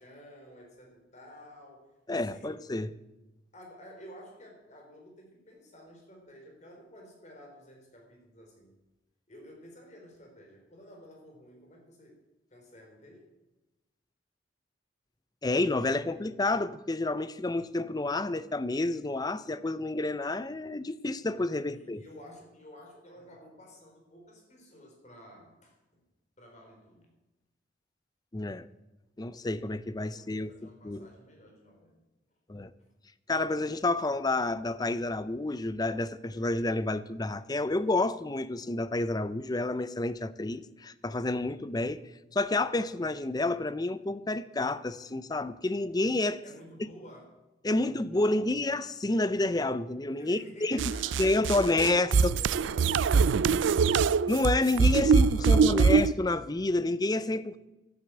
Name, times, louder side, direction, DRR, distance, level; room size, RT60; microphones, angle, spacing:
voice 1, 0.0-1.9 2.2-2.6 3.5-8.7 9.3-12.2 12.5-13.3 15.4-16.4 21.7-25.8 26.4-27.1 29.9-32.0 46.4-47.4 47.7-48.5 50.1-54.1 55.1-56.0, equal, 40° left, 3.8 m, -52 dB
voice 2, 2.1-2.9 15.4-22.0 28.3-28.7 29.2-31.1 32.5-32.7 33.3-42.0 42.3-46.4 47.6-50.8 51.2-52.4 54.3-57.6, left 2 dB, 20° left, 0.5 m, -29 dB
sound 1, 50.8-56.1, right 5 dB, 75° right, 0.4 m, -23 dB
11.5 x 9.3 x 8.0 m
head